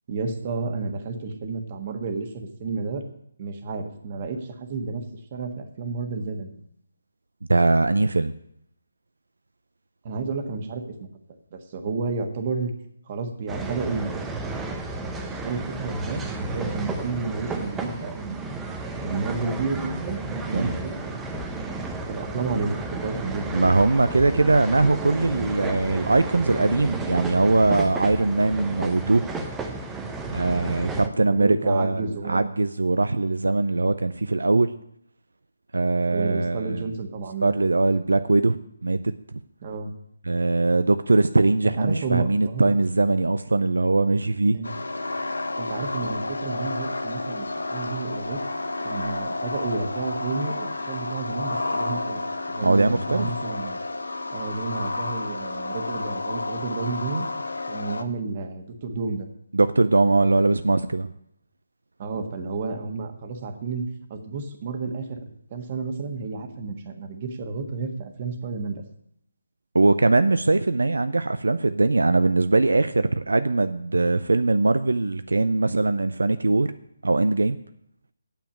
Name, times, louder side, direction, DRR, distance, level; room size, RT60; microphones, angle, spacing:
voice 1, 0.1-3.0 3.4-5.0 5.3-6.6 10.0-10.9 11.5-12.7 13.1-14.5 15.1-18.6 19.0-21.6 22.1-23.4 30.9-32.4 36.1-37.5 39.6-39.9 41.6-42.7 44.5-44.7 45.6-48.4 48.8-52.2 52.5-53.8 54.3-57.3 57.7-59.3 62.0-63.8 64.1-65.2 65.5-68.8, right 4 dB, 35° right, 6 dB, 1.5 m, -31 dB
voice 2, 7.5-8.3 20.5-20.7 23.5-29.2 30.3-34.7 35.7-36.8 37.4-38.6 38.8-39.0 39.3-39.4 40.3-44.6 52.6-53.3 59.5-61.1 69.7-76.7 77.0-77.6, right 3 dB, 80° right, 11 dB, 0.5 m, -21 dB
sound 1, 13.5-31.1, right 3 dB, 10° right, 0.8 m, -33 dB
sound 2, 44.6-58.0, left 2 dB, 80° left, 1.0 m, -31 dB
9.0 x 7.0 x 8.8 m, 0.70 s
figure-of-eight pair, 155°, 0 cm